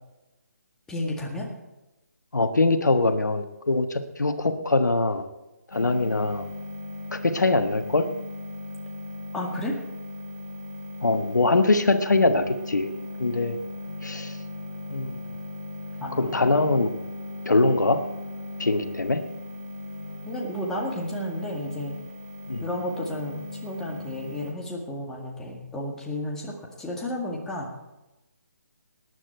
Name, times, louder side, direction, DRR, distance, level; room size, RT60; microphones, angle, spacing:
voice 1, 0.9-1.5 9.3-9.8 16.0-16.3 20.2-21.9 22.6-27.7, left 1 dB, 5° left, -2 dB, 1.9 m, -32 dB
voice 2, 2.3-5.3 5.7-6.4 7.1-8.1 11.0-12.9 13.2-13.6 14.0-14.4 14.9-15.2 16.2-16.9 17.4-18.0 18.6-19.2 22.5-22.6, left 2 dB, 85° left, 8 dB, 1.4 m, -22 dB
sound 1, 5.7-24.5, left 2 dB, 65° left, 3.0 m, -38 dB
19.0 x 9.8 x 4.5 m, 1.0 s
figure-of-eight pair, 155°, 9 cm